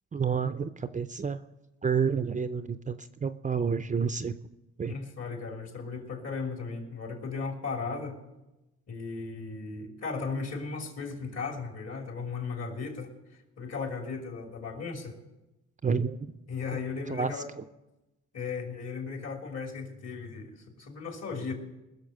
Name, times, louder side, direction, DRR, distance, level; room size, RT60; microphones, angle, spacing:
voice 1, 0.1-1.4 1.8-4.3 4.8-4.9 15.8-16.2 16.7-16.8 17.1-17.3, right 6 dB, 25° right, 11 dB, 0.5 m, -29 dB
voice 2, 4.9-8.2 8.9-13.1 13.6-15.2 16.5-17.5 18.3-21.5, left 4 dB, 55° left, 2 dB, 3.2 m, -36 dB
20.0 x 6.7 x 6.6 m, 0.98 s
cardioid pair, 90°, 30 cm